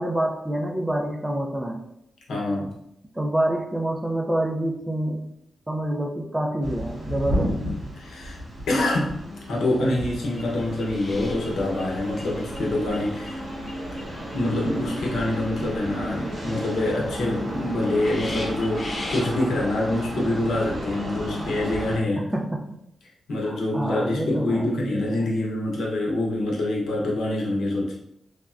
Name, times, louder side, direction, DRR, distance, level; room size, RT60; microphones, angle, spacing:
voice 1, 0.0-1.8 3.1-5.3 5.7-7.5 15.6-15.8 22.2-22.7 23.5-25.2, right 1 dB, 15° right, 2 dB, 0.4 m, -27 dB
voice 2, 2.3-2.7 8.0-8.4 8.7-9.2 9.5-13.4 14.3-22.3 23.3-27.9, left 1 dB, 85° left, -3 dB, 0.8 m, -25 dB
sound 1, 6.6-22.0, equal, 85° right, 1.3 m, -33 dB
sound 2, 10.2-14.7 15.1-16.3 16.7-16.8 17.0-17.1 17.5-17.6 17.8-19.3, left 2 dB, 50° left, 0.9 m, -40 dB
sound 3, 10.3-21.9, right 1 dB, 65° right, 1.1 m, -44 dB
3.4 x 2.1 x 2.4 m, 0.78 s
cardioid pair, 80°, 0 cm